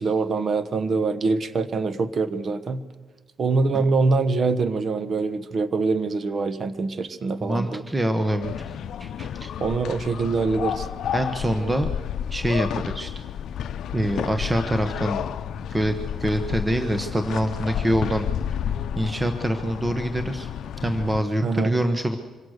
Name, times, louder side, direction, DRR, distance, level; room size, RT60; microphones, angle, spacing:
voice 1, 0.0-2.8 3.4-7.8 9.6-10.9 21.4-21.8, right 4 dB, 45° right, 13 dB, 1.2 m, -24 dB
voice 2, 7.5-8.5 9.0-9.5 11.1-11.9 12.3-13.1 13.9-15.2 15.7-18.3 19.0-20.5 20.8-22.2, right 1 dB, 15° right, 7 dB, 1.2 m, -25 dB
sound 1, 8.4-21.2, left 9 dB, 70° left, 0.6 m, -31 dB
25.5 x 17.0 x 6.6 m, 1.4 s
cardioid pair, 90°, 0 cm